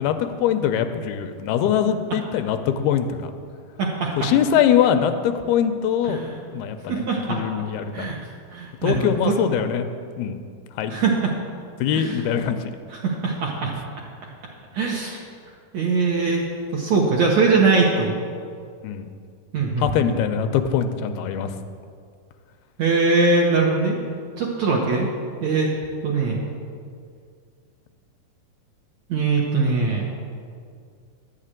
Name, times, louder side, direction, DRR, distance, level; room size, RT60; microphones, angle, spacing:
voice 1, 0.0-3.3 4.2-6.2 6.5-8.1 8.8-9.9 10.2-10.4 10.8-10.9 11.8-12.6 18.8-19.1 19.8-21.5, left 9 dB, 85° left, 8 dB, 2.5 m, -22 dB
voice 2, 3.8-4.3 6.0-6.4 6.9-7.4 7.9-8.2 8.5-9.4 10.9-11.3 11.9-12.2 12.9-13.7 14.7-15.2 15.7-16.4 16.7-18.2 19.5-20.0 22.8-24.0 24.4-25.1 25.4-25.7 26.0-26.4 29.1-30.1, right 4 dB, 65° right, -2 dB, 1.8 m, -21 dB
11.5 x 6.7 x 8.8 m, 2.2 s
omnidirectional pair, 4.5 m